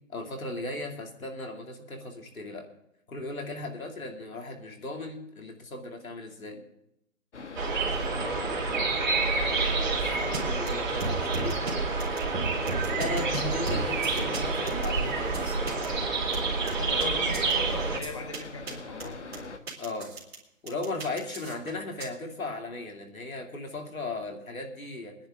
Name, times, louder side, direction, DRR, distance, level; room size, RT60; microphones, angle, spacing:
voice 1, 0.1-2.7 3.1-6.6 9.6-11.6 12.8-15.9 19.8-20.1 20.6-25.2, left 2 dB, 85° left, 2 dB, 3.0 m, -37 dB
sound 1, 7.3-19.6, left 4 dB, 60° left, 1.3 m, -42 dB
sound 2, 7.6-18.0, right 4 dB, 35° right, 2.9 m, -28 dB
voice 2, 7.7-8.8 16.7-19.6, left 2 dB, 25° left, 3 dB, 0.8 m, -40 dB
sound 3, 10.3-10.4 10.7-10.8 11.0-11.7 12.0-13.4 13.7-15.9 16.3-17.1 17.3-17.5 18.0-18.4 18.7-18.8 19.0-20.4 20.7-22.1, right 3 dB, 5° right, 2.3 m, -36 dB
22.0 x 10.5 x 3.8 m, 0.82 s
hypercardioid pair, 170°, 41 cm